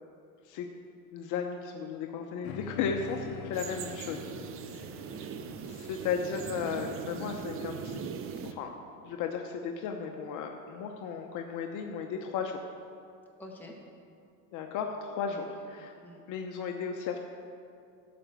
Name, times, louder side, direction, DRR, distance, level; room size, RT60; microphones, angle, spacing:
voice 1, 1.1-4.2 4.7-4.8 5.7-8.0 8.4-8.7 9.0-12.6 14.5-15.4 15.7-15.9 16.3-17.2, left 6 dB, 50° left, 3 dB, 0.8 m, -35 dB
sound 1, 2.4-7.2, left 9 dB, 80° left, 0.6 m, -45 dB
sound 2, 3.5-8.5, right 6 dB, 35° right, 0.6 m, -40 dB
voice 2, 4.7-5.8 13.4-13.8 15.3-15.7 16.0-16.2, left 2 dB, 5° left, -2 dB, 1.4 m, -50 dB
12.0 x 5.1 x 6.6 m, 2.4 s
supercardioid pair, 125°, 41 cm